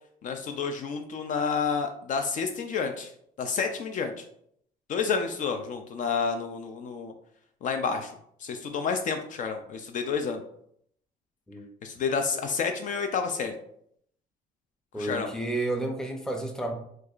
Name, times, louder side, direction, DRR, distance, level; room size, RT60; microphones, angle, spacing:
voice 1, 0.2-3.1 3.4-4.2 4.9-7.1 7.6-8.1 8.4-10.4 11.8-13.5 15.0-15.3, left 5 dB, 50° left, 6 dB, 0.4 m, -29 dB
voice 2, 14.9-16.7, right 2 dB, 5° left, 3 dB, 0.6 m, -31 dB
4.5 x 2.4 x 2.4 m, 0.69 s
cardioid pair, 110°, 17 cm